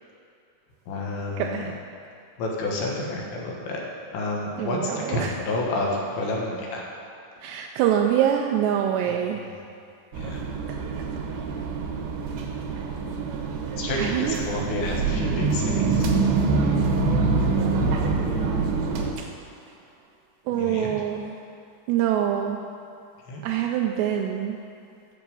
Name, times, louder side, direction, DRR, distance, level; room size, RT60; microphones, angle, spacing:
voice 1, 0.9-1.7 2.4-3.8 4.1-4.8 5.1-6.8 9.5-9.6 10.2-10.4 13.8-16.0 20.5-20.9 23.3-23.4, left 2 dB, 75° left, -2 dB, 3.5 m, -29 dB
voice 2, 1.4-1.7 4.6-5.4 7.4-9.4 11.0-11.1 14.0-14.4 19.2-19.3 20.5-21.4 21.9-22.6 23.4-24.6, right 10 dB, 85° right, 2 dB, 2.4 m, -25 dB
sound 1, 10.1-19.1, right 4 dB, 70° right, 2.5 m, -25 dB
12.5 x 7.2 x 5.4 m, 2.7 s
omnidirectional pair, 5.4 m